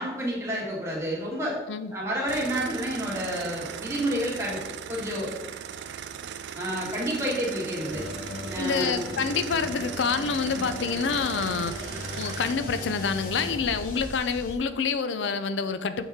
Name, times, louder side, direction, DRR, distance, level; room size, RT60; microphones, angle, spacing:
voice 1, 0.0-1.6 1.9-4.6 4.9-5.3 6.5-8.0 8.5-9.0, equal, 15° right, -5 dB, 1.9 m, -29 dB
sound 1, 2.3-12.5, right 8 dB, 75° right, 0.4 m, -38 dB
sound 2, 7.9-14.6, left 1 dB, 50° left, 1.1 m, -37 dB
voice 2, 8.6-11.7 12.1-16.1, left 5 dB, 90° left, 11 dB, 0.4 m, -27 dB
7.8 x 4.9 x 3.6 m, 1.1 s
head